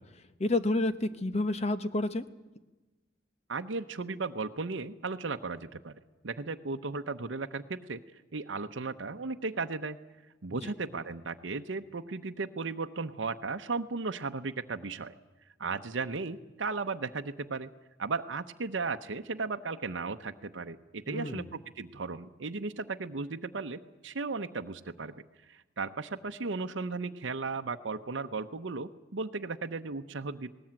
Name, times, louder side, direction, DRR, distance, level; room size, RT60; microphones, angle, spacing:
voice 1, 0.4-2.2 10.6-10.7 21.1-21.5, left 2 dB, 35° left, 12 dB, 1.0 m, -30 dB
voice 2, 3.5-5.9 6.2-8.0 8.3-10.0 10.4-15.1 15.6-17.7 18.0-25.1 25.5-30.5, right 4 dB, 75° right, 6 dB, 0.8 m, -35 dB
19.5 x 18.5 x 8.8 m, 1.1 s
head